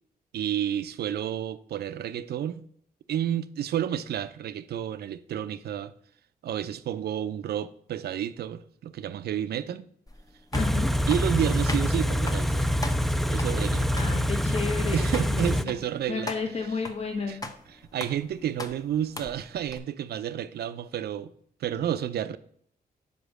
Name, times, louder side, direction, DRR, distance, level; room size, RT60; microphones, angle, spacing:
voice 1, 0.3-2.6 3.1-5.9 6.4-9.9 11.1-12.7 13.2-13.9 14.9-16.3 17.3-17.4 17.9-21.3 21.6-22.4, right 10 dB, 80° right, 0.4 m, -30 dB
sound 1, 10.1-19.8, left 2 dB, 20° left, 0.8 m, -41 dB
voice 2, 10.5-10.9 13.9-15.7 16.1-17.4, left 5 dB, 40° left, 1.2 m, -32 dB
Car / Idling, 10.5-15.6, equal, ahead, 0.3 m, -25 dB
5.0 x 5.0 x 6.3 m
cardioid pair, 70°, 16 cm